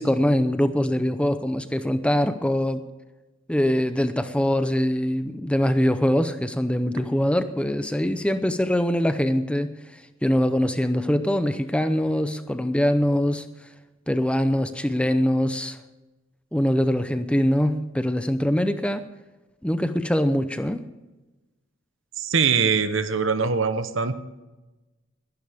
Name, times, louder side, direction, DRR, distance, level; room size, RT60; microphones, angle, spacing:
voice 1, 0.0-2.8 3.5-13.5 14.1-15.8 16.5-19.0 19.6-20.8, equal, 5° left, 9 dB, 0.6 m, -23 dB
voice 2, 22.2-24.1, right 5 dB, 65° right, 10 dB, 1.1 m, -22 dB
21.0 x 12.0 x 3.6 m, 1.1 s
head